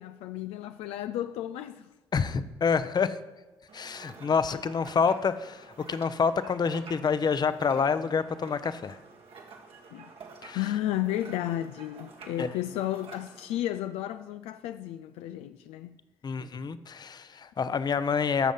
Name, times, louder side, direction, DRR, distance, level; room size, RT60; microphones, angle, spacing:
voice 1, 0.0-1.9 9.9-10.1 10.5-15.9, left 13 dB, 80° left, 0.4 m, -33 dB
voice 2, 2.1-3.2 3.7-9.0 10.4-10.6 12.4-12.5 16.2-18.5, left 5 dB, 40° left, 0.7 m, -27 dB
sound 1, 3.7-13.6, right 4 dB, 65° right, 1.7 m, -49 dB
12.5 x 6.3 x 5.5 m
hypercardioid pair, 55°, 10 cm